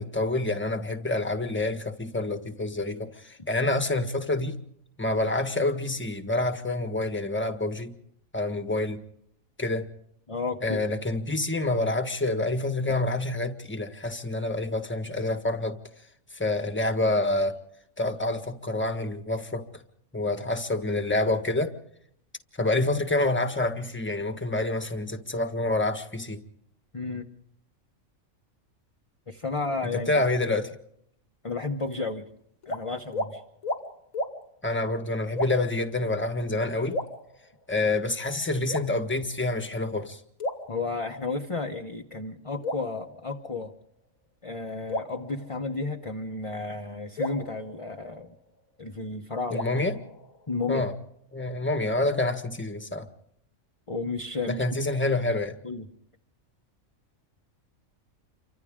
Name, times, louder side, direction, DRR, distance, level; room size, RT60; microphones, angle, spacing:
voice 1, 0.0-4.6 5.0-7.9 8.3-9.0 9.6-9.9 10.6-15.8 16.3-17.5 18.0-19.7 20.1-21.7 22.6-26.4 29.8-30.7 34.6-37.0 37.7-40.2 49.5-50.0 50.7-50.9 51.3-53.1 54.5-55.6, left 2 dB, 10° left, 1.4 m, -27 dB
voice 2, 10.3-10.8 26.9-27.3 29.3-30.2 31.4-32.3 32.7-33.4 40.7-43.7 44.4-48.3 48.8-49.7 50.5-50.8 53.9-54.6 55.6-55.9, left 3 dB, 25° left, 1.1 m, -32 dB
sound 1, 32.6-32.8 33.1-33.3 33.6-33.8 34.1-34.3 35.3-35.8 36.9-37.8 38.7-39.4 40.4-41.4 42.6-43.8 44.9-46.1 47.2-48.6 49.5-50.7, left 1 dB, 85° left, 2.5 m, -35 dB
29.0 x 25.0 x 3.7 m
omnidirectional pair, 1.4 m